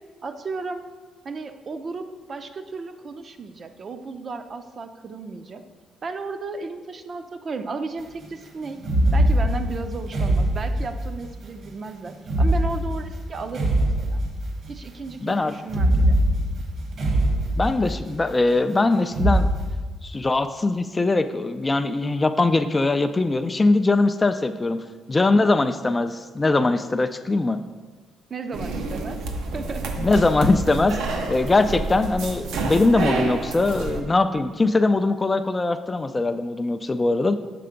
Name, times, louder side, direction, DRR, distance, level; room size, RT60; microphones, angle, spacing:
voice 1, 0.2-0.8 1.2-5.6 6.0-8.8 9.1-14.2 14.7-16.2 28.3-29.3 29.5-30.0, right 4 dB, 45° right, 8 dB, 0.5 m, -34 dB
sound 1, 8.8-11.3 12.2-14.8 15.6-18.2 19.1-19.7, right 1 dB, 65° right, 1.1 m, -22 dB
voice 2, 15.2-15.5 17.6-19.5 20.0-24.8 25.1-27.6 30.0-31.0 31.3-37.3, left 2 dB, 25° left, 9 dB, 0.3 m, -21 dB
sound 2, 28.5-34.0, right 3 dB, 85° right, 0.6 m, -29 dB
6.8 x 3.3 x 5.1 m, 1.4 s
cardioid pair, 90°, 0 cm